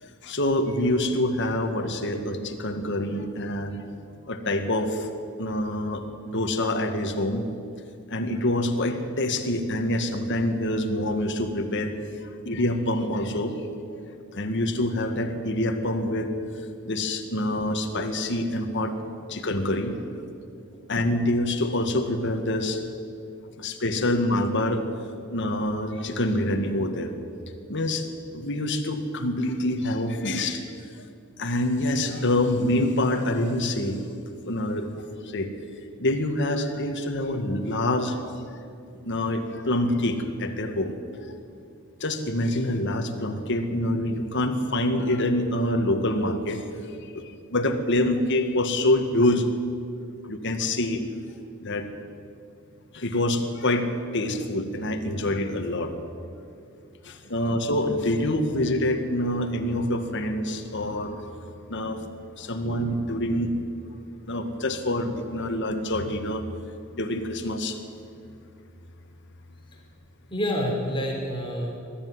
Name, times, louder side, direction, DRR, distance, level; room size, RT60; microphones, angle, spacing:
voice 1, 0.0-3.8 4.3-5.1 5.4-7.5 8.1-12.0 12.2-14.0 14.3-16.3 16.9-19.0 19.3-20.0 20.9-22.8 23.6-24.9 25.3-27.1 27.7-28.1 28.3-30.7 31.0-31.1 31.4-34.0 34.4-34.9 35.2-35.5 36.0-38.4 39.0-40.9 41.2-41.3 42.0-49.5 50.2-51.0 51.6-51.9 52.9-55.9 57.0-61.3 61.7-62.0 62.4-63.5 64.3-66.4 66.9-67.8, left 1 dB, 55° left, 6 dB, 1.9 m, -26 dB
voice 2, 70.3-71.7, equal, 25° left, 0 dB, 3.5 m, -29 dB
21.0 x 13.5 x 9.7 m, 2.5 s
head